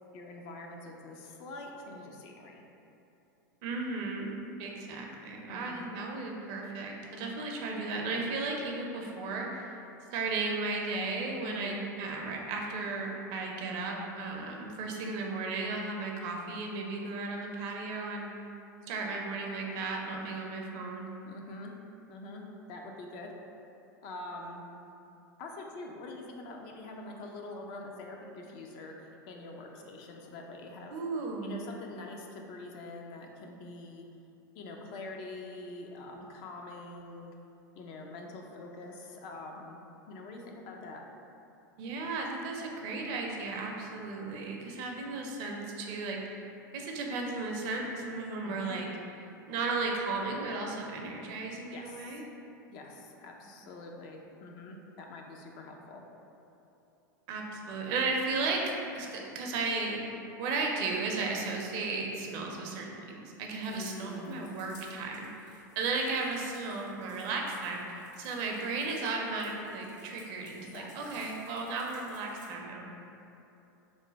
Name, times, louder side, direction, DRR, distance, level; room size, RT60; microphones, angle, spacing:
voice 1, 0.1-2.6 5.5-5.9 11.4-11.8 21.2-21.7 22.1-23.3 24.0-24.6 25.4-31.0 31.4-34.1 34.6-37.3 37.8-41.0 48.4-48.8 51.7-52.2 52.7-56.0 63.7-64.4 70.6-71.2, left 2 dB, 50° left, 1 dB, 0.5 m, -45 dB
voice 2, 3.6-9.7 10.1-18.3 18.9-21.1 30.9-31.6 41.8-46.4 46.7-48.9 49.5-52.2 57.3-72.9, right 3 dB, 55° right, 0 dB, 0.5 m, -35 dB
sound 1, 63.6-72.5, left 2 dB, 65° left, 1.4 m, -59 dB
3.1 x 2.1 x 4.0 m, 2.8 s
hypercardioid pair, 100°, 10 cm